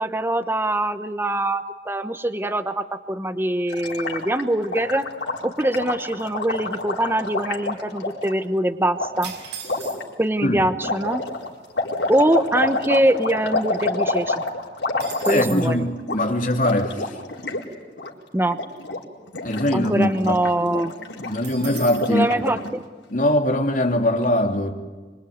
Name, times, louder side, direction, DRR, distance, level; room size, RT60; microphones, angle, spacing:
voice 1, 0.0-5.1 5.4-9.3 10.2-11.2 12.1-14.4 15.3-15.8 18.3-18.6 19.7-20.9 22.1-22.8, right 1 dB, 15° right, 9 dB, 1.0 m, -23 dB
Gurgling, 3.7-8.3 9.0-9.1 9.6-10.0 10.8-15.7 16.0-16.2 16.5-17.6 17.9-18.1 18.5-19.0 19.3-22.7, left 2 dB, 80° left, 4.3 m, -28 dB
sound 1, 9.2-10.3 11.1-11.2 11.4-11.7 12.2-13.6 14.0-14.1 14.4-15.8 21.4-22.2, right 7 dB, 75° right, 5.4 m, -38 dB
voice 2, 15.3-17.2 19.4-20.4 21.2-22.3 23.1-24.7, left 1 dB, 50° left, 4 dB, 3.2 m, -22 dB
25.0 x 25.0 x 9.6 m, 1.3 s
head